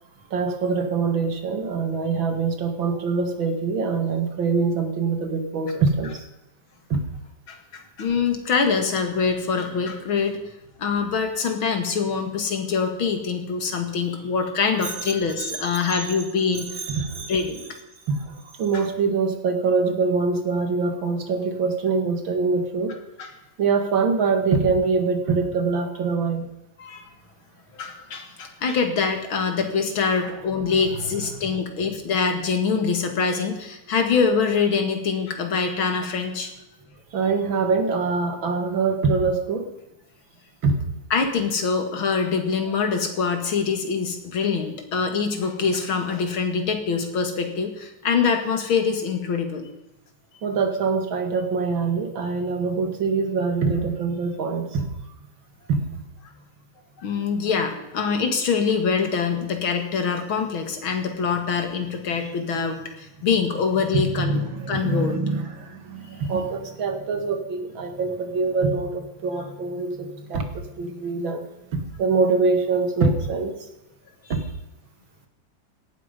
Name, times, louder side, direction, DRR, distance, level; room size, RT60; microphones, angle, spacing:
voice 1, 0.3-6.3 6.9-7.0 14.8-16.1 16.8-17.3 18.1-23.0 23.6-26.5 30.2-30.3 30.9-31.1 37.1-39.7 40.6-40.8 50.4-54.9 55.7-55.8 63.9-71.5 71.7-73.5 74.3-74.4, right 4 dB, 75° right, 6 dB, 2.7 m, -24 dB
voice 2, 7.5-10.4 10.8-16.8 17.3-17.6 18.7-18.8 23.2-23.3 26.8-27.0 27.7-36.5 41.1-49.6 57.0-64.4 64.7-65.2, left 5 dB, 85° left, 5 dB, 2.9 m, -24 dB
17.0 x 12.5 x 5.3 m, 0.94 s
omnidirectional pair, 2.2 m